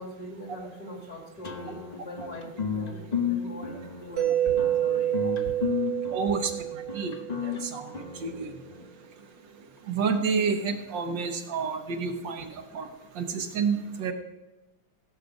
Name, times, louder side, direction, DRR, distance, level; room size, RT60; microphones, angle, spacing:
voice 1, 0.0-5.2, left 1 dB, 45° left, 2 dB, 2.4 m, -41 dB
sound 1, 1.4-8.9, left 7 dB, 65° left, 0.4 m, -33 dB
Mallet percussion, 4.2-7.9, right 11 dB, 45° right, 1.5 m, -28 dB
voice 2, 6.1-7.1 7.4-7.9 8.2-8.5 9.9-12.5 12.7-12.9 13.2-14.1, right 5 dB, 70° right, 5 dB, 1.6 m, -29 dB
15.5 x 7.4 x 5.2 m, 1.0 s
omnidirectional pair, 2.2 m